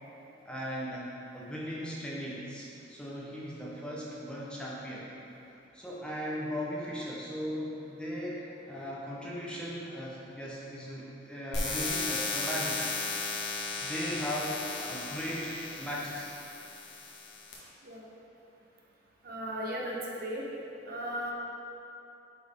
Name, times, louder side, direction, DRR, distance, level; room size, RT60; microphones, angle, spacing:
voice 1, 0.4-1.0 1.3-5.1 5.7-12.8 13.8-16.3, equal, 5° left, -6 dB, 0.8 m, -37 dB
sound 1, 11.5-17.5, left 3 dB, 60° left, 1.4 m, -35 dB
voice 2, 19.2-20.5 20.8-21.3, equal, 50° right, -3 dB, 0.9 m, -36 dB
8.5 x 4.3 x 3.6 m, 2.8 s
head